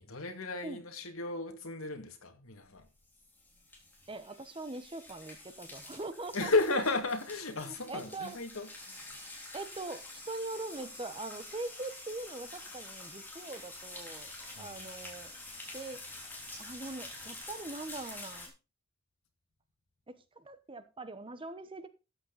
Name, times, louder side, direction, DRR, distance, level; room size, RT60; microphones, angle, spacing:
voice 1, 0.0-2.9 6.3-9.3 14.5-14.8, left 3 dB, 75° left, 2.2 m, -34 dB
sound 1, 2.8-18.5, left 2 dB, 10° left, 3.3 m, -48 dB
voice 2, 4.1-6.5 7.6-8.4 9.5-14.3 14.6-16.0 16.6-18.5 20.1-21.9, right 2 dB, 25° right, 1.0 m, -42 dB
13.0 x 8.7 x 4.0 m
head